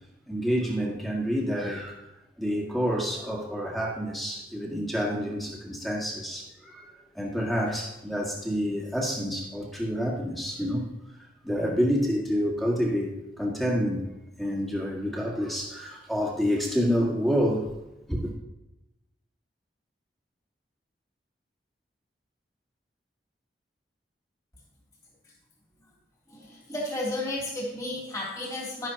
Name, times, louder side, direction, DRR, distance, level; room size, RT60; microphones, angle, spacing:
voice 1, 0.3-2.0 2.4-10.9 11.4-14.1 14.4-17.7 18.1-18.3, equal, ahead, -3 dB, 1.8 m, -28 dB
voice 2, 26.3-28.9, left 1 dB, 20° left, -6 dB, 3.0 m, -33 dB
11.5 x 10.5 x 2.9 m, 0.94 s
head